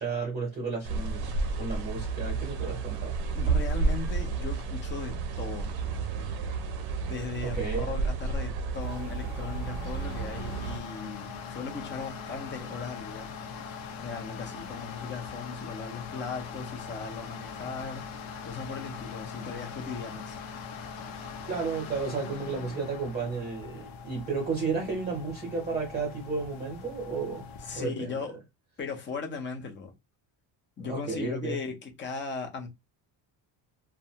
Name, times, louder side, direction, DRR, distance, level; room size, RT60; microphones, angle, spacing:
voice 1, 0.0-3.1 7.4-8.0 21.1-27.4 27.7-28.2 30.9-31.6, right 4 dB, 20° right, 0.8 m, -33 dB
sound 1, 0.8-10.8, right 4 dB, 55° right, 0.6 m, -31 dB
voice 2, 3.3-5.7 7.1-13.3 14.0-18.0 18.4-20.4 27.6-28.4 28.8-29.9 30.8-32.7, left 4 dB, 25° left, 0.5 m, -38 dB
sound 2, 8.8-27.8, left 5 dB, 75° left, 0.7 m, -41 dB
2.4 x 2.2 x 2.8 m
cardioid pair, 170°, 47 cm